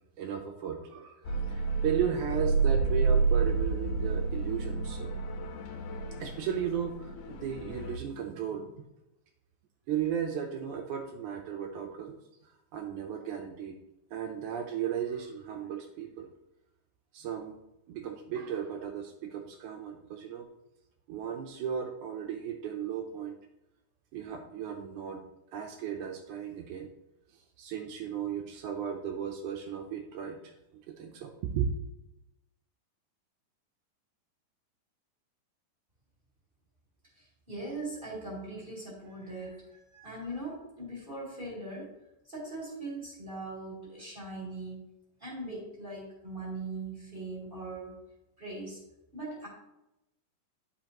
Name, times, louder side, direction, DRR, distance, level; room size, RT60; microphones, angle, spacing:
voice 1, 0.2-5.2 6.2-8.8 9.9-13.8 14.1-16.3 17.1-17.6 17.9-20.5 21.1-23.4 24.1-25.2 25.5-26.9 27.3-31.7, right 8 dB, 75° right, 3 dB, 2.0 m, -35 dB
sound 1, 1.2-8.0, right 4 dB, 75° left, 2.1 m, -30 dB
voice 2, 37.1-41.9 42.2-44.8 45.2-48.0 48.4-48.8 49.1-49.5, right 2 dB, 15° right, -6 dB, 2.5 m, -40 dB
11.0 x 5.2 x 3.0 m, 0.90 s
omnidirectional pair, 3.9 m